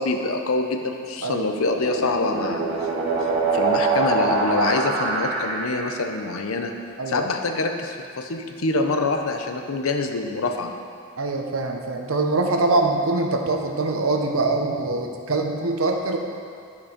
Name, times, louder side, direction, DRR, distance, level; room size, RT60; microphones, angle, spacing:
voice 1, 0.0-2.6 3.5-6.7 7.1-10.7, left 3 dB, 90° left, 4 dB, 0.7 m, -25 dB
sound 1, 1.3-6.1, right 4 dB, 55° right, 1.6 m, -24 dB
voice 2, 7.0-7.3 11.2-16.2, right 2 dB, 80° right, 3 dB, 0.9 m, -23 dB
11.0 x 5.0 x 5.1 m, 2.3 s
head